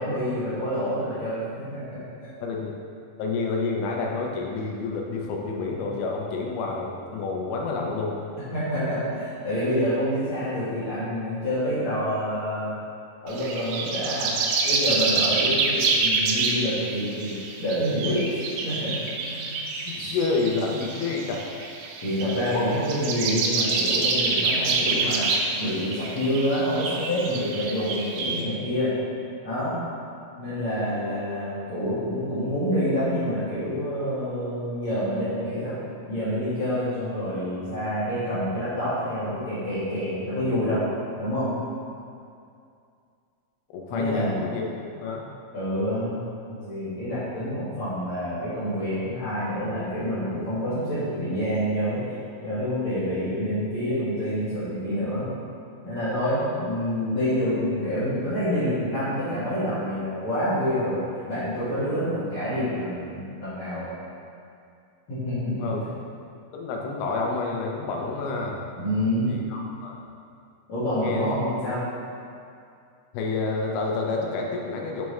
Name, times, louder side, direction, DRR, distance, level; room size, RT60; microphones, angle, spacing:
voice 1, 0.0-2.0 8.5-12.7 13.2-14.3 14.6-18.2 18.6-18.9 19.3-19.5 20.0-20.1 22.0-25.3 25.6-28.9 29.4-29.8 30.4-35.8 36.1-40.8 41.2-41.5 43.9-44.3 45.5-46.2 46.5-52.1 52.4-55.3 55.8-63.9 65.1-65.7 68.8-69.3 70.7-71.8, equal, 50° left, -16 dB, 1.7 m, -27 dB
voice 2, 2.4-2.8 3.2-8.2 15.2-15.4 19.9-21.4 22.5-22.6 43.7-44.6 45.0-45.3 65.6-65.8 66.5-68.6 69.2-70.0 71.0-71.3 73.1-75.0, left 3 dB, 85° left, -1 dB, 2.6 m, -29 dB
sound 1, 13.3-28.4, right 4 dB, 85° right, 2.5 m, -27 dB
6.6 x 4.6 x 3.1 m, 2.4 s
omnidirectional pair, 4.4 m